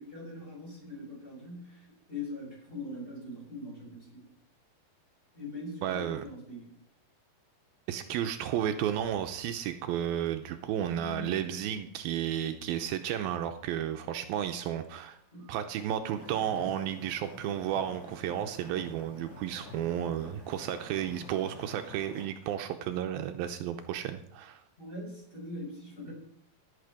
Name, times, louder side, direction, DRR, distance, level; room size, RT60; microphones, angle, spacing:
voice 1, 0.0-4.3 5.3-6.7 15.3-15.4 24.8-26.1, left 2 dB, 15° left, -3 dB, 5.8 m, -42 dB
voice 2, 5.8-6.2 7.9-15.2 15.5-24.6, right 10 dB, 80° right, 7 dB, 2.5 m, -33 dB
sound 1, 8.9-18.1, left 2 dB, 50° right, 2.5 m, -53 dB
sound 2, 16.1-22.3, left 2 dB, 50° left, 6.9 m, -48 dB
17.5 x 8.8 x 5.0 m, 0.68 s
omnidirectional pair, 4.4 m